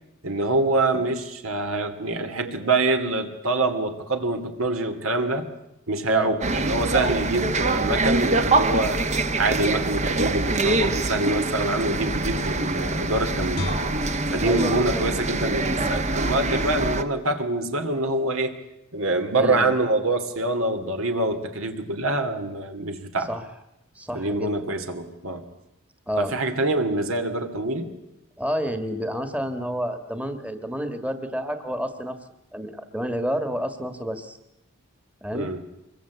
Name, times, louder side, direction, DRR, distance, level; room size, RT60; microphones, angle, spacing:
voice 1, 0.2-5.5 5.9-9.0 9.4-13.7 14.3-18.5 18.9-23.3 24.1-25.4 26.2-28.0 35.3-35.6, right 2 dB, 70° right, 7 dB, 2.5 m, -25 dB
sound 1, 6.4-17.0, right 2 dB, 35° right, 1.2 m, -24 dB
Guitar, 13.5-16.7 17.1-17.3, left 2 dB, 75° left, 1.8 m, -38 dB
voice 2, 14.4-15.0 15.6-16.0 19.3-19.7 23.3-23.4 23.9-24.6 26.1-26.3 28.4-32.2 32.5-34.4 35.2-35.5, equal, 5° right, 9 dB, 1.6 m, -30 dB
24.5 x 22.0 x 8.3 m, 0.88 s
head